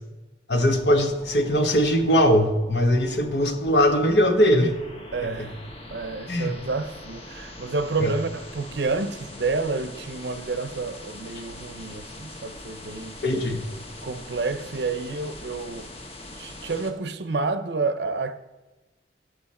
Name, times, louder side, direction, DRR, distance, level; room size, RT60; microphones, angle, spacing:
voice 1, 0.5-4.7 5.2-5.5 6.3-6.5 8.0-8.1 13.2-13.6, equal, 65° left, 1.2 m, -21 dB
sound 1, 0.5-16.9, left 1 dB, 35° left, 1.1 m, -42 dB
voice 2, 5.1-5.6 5.9-13.2 14.0-15.9 16.3-18.4, right 3 dB, 70° right, 0.7 m, -29 dB
11.5 x 8.1 x 4.2 m
head